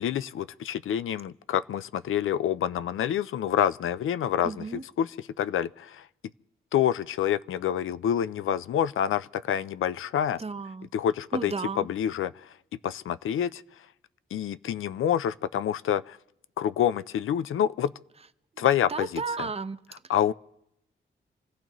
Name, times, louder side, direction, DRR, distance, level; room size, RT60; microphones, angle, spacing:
voice 1, 0.0-6.0 6.7-10.4 10.9-12.5 12.8-13.6 14.3-16.2 16.6-17.9 18.6-19.5 20.1-20.3, left 10 dB, 80° left, 0.5 m, -27 dB
voice 2, 4.4-4.8 10.4-10.9 11.3-11.9 18.9-19.8, right 4 dB, 30° right, 0.7 m, -33 dB
27.5 x 15.5 x 3.0 m
cardioid pair, 85°, 21 cm